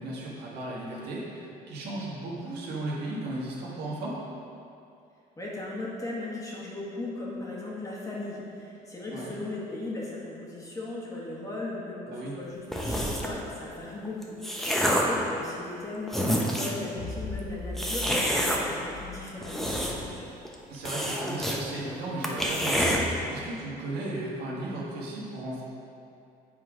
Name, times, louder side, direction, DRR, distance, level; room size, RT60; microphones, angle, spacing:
voice 1, 0.0-4.2 9.1-9.3 12.1-12.4 14.6-15.0 20.7-25.6, right 2 dB, 75° right, -5 dB, 1.6 m, -35 dB
voice 2, 5.4-20.3, left 2 dB, 20° left, -5 dB, 1.6 m, -37 dB
sound 1, 12.7-13.4 14.0-15.2 15.8-15.9 16.1-16.8 17.8-18.6 19.3-20.2 20.4-20.5 20.8-21.6 21.9-22.0 22.2-23.0, equal, ahead, 0.8 m, -27 dB
sound 2, 16.9-20.4, left 3 dB, 65° left, 0.9 m, -40 dB
8.0 x 3.7 x 4.9 m, 2.6 s
cardioid pair, 110°, 17 cm